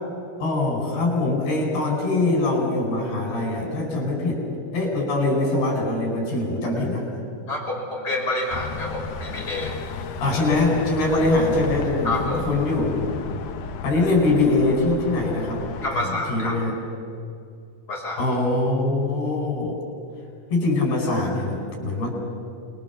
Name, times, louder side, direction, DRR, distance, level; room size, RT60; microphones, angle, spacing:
voice 1, 0.4-4.4 4.7-7.1 10.2-13.0 13.8-15.6 15.9-16.7 18.2-19.8 20.5-22.1, left 2 dB, 85° left, 1 dB, 6.9 m, -23 dB
voice 2, 7.5-9.7 12.0-12.4 15.8-16.6 17.9-18.2, left 2 dB, 25° left, -1 dB, 5.3 m, -28 dB
sound 1, 8.5-15.9, left 5 dB, 65° left, 2.2 m, -33 dB
28.0 x 21.0 x 7.1 m, 2.5 s
omnidirectional pair, 4.5 m